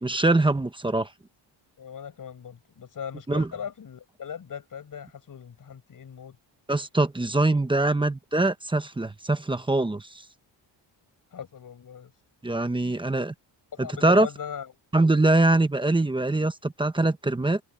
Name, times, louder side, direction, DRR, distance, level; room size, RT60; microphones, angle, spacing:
voice 1, 0.0-1.1 3.3-3.5 6.7-10.1 12.4-13.3 13.8-14.3 14.9-17.6, right 2 dB, 10° right, 1.0 m, -23 dB
voice 2, 1.8-6.4 11.3-12.1 13.7-14.7, left 7 dB, 45° left, 6.5 m, -39 dB
wide cardioid pair, 155°, 45 cm